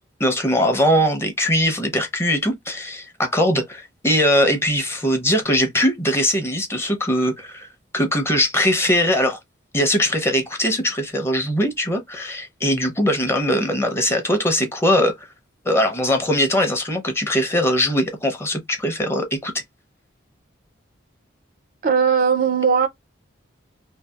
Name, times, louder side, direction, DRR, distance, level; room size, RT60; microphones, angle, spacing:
voice 1, 0.2-7.7 7.9-9.4 9.7-15.3 15.6-19.5, equal, 15° left, 0.5 m, -21 dB
voice 2, 21.8-22.9, right 6 dB, 45° right, 0.4 m, -18 dB
2.6 x 2.3 x 2.3 m
head